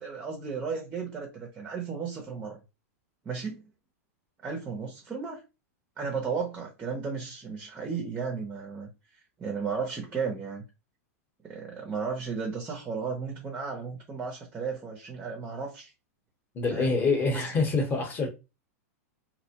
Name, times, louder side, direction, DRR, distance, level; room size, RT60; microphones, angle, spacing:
voice 1, 0.0-2.6 3.3-3.6 4.4-5.4 6.0-8.9 9.4-10.6 11.4-15.9 16.7-16.9 17.3-17.4, right 5 dB, 15° right, 0.5 m, -34 dB
voice 2, 16.5-18.3, left 4 dB, 25° left, 0.9 m, -26 dB
2.5 x 2.1 x 2.8 m
hypercardioid pair, 135°, 9 cm